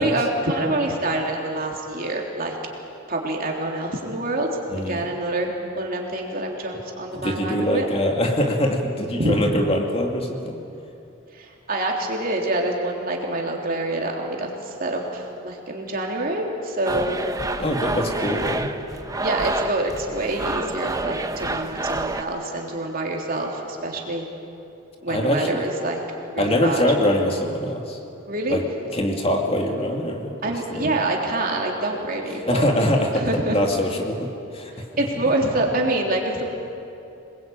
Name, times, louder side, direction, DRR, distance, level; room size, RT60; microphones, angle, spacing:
voice 1, 0.0-2.6 3.1-7.9 9.2-9.5 11.3-17.2 19.2-24.3 25.0-26.0 26.3-26.8 28.3-28.6 30.4-32.6 33.1-33.6 34.7-36.5, right 1 dB, 45° right, 0 dB, 3.6 m, -26 dB
voice 2, 7.1-10.6 17.6-18.7 25.1-25.6 26.4-28.0 28.5-28.6 28.9-30.9 32.5-34.7, left 1 dB, 30° left, 2 dB, 2.5 m, -23 dB
sound 1, 16.8-22.2, right 2 dB, 15° right, 1.0 m, -28 dB
26.5 x 21.0 x 8.9 m, 2.8 s
head